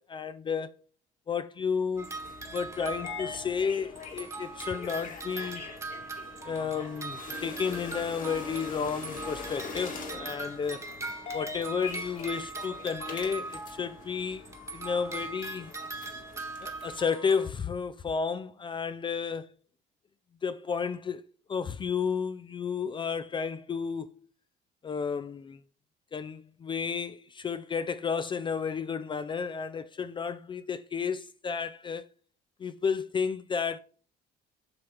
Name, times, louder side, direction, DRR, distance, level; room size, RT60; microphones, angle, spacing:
voice 1, 0.1-0.7 1.3-2.1 2.5-5.6 6.5-10.9 11.3-14.4 14.7-15.7 16.6-19.5 20.4-24.1 24.8-25.6 26.1-32.1 32.6-33.8, left 6 dB, 30° left, 0.4 m, -32 dB
sound 1, 2.0-17.0, left 4 dB, 50° left, 1.7 m, -43 dB
sound 2, 2.0-3.7 4.0-14.2 14.4-17.5, right 3 dB, 15° right, 1.3 m, -41 dB
7.9 x 5.6 x 3.4 m
cardioid pair, 110°, 17 cm